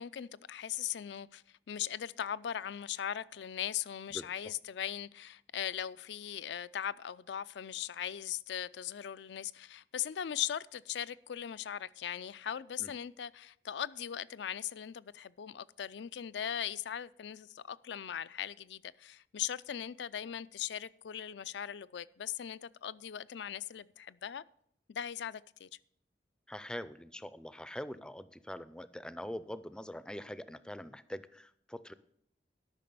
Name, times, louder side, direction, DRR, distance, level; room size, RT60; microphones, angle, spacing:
voice 1, 0.0-24.4 24.9-25.7, left 9 dB, 70° left, 0.4 m, -39 dB
voice 2, 26.5-31.9, left 1 dB, 5° left, 0.4 m, -43 dB
12.5 x 6.0 x 6.8 m
head